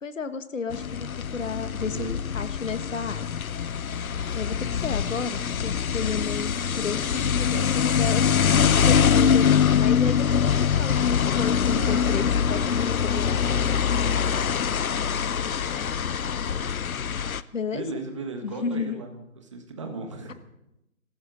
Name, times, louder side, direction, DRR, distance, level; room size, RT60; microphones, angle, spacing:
voice 1, 0.0-3.2 4.3-13.7 17.5-17.8 18.4-19.0, left 5 dB, 65° left, 11 dB, 1.4 m, -32 dB
sound 1, 0.7-17.4, left 7 dB, 80° left, 0.8 m, -24 dB
voice 2, 1.7-2.2 7.5-7.7 11.7-12.3 17.7-19.2 19.5-20.3, right 3 dB, 20° right, 4 dB, 1.5 m, -36 dB
25.5 x 14.5 x 4.0 m, 0.88 s
hypercardioid pair, 170°, 42 cm